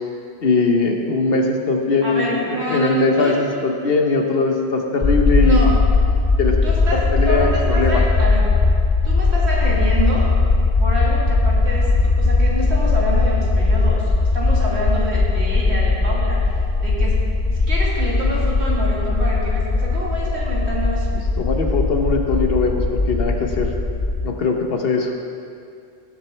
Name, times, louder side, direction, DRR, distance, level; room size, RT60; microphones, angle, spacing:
voice 1, 0.4-5.6 6.4-6.6 6.9-8.0 21.4-23.7 24.2-25.1, left 3 dB, 60° left, 3 dB, 1.1 m, -20 dB
voice 2, 2.0-3.4 5.4-5.8 6.6-7.0 7.3-8.5 9.0-10.3 10.8-21.1, right 1 dB, 70° right, -5 dB, 2.4 m, -27 dB
sound 1, 5.0-24.3, left 3 dB, 35° left, 0.5 m, -19 dB
17.5 x 7.4 x 3.3 m, 2.4 s
omnidirectional pair, 1.1 m